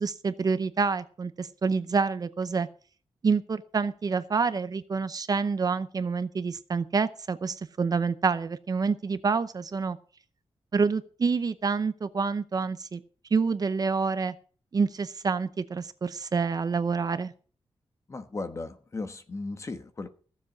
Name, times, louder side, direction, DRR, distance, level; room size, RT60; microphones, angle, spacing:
voice 1, 0.0-2.7 3.2-10.0 10.7-13.0 13.3-14.3 14.7-17.3, right 5 dB, 40° right, 0.7 m, -27 dB
voice 2, 18.1-20.1, left 3 dB, 30° left, 1.2 m, -36 dB
15.5 x 7.4 x 6.1 m
wide cardioid pair, 165°, 10 cm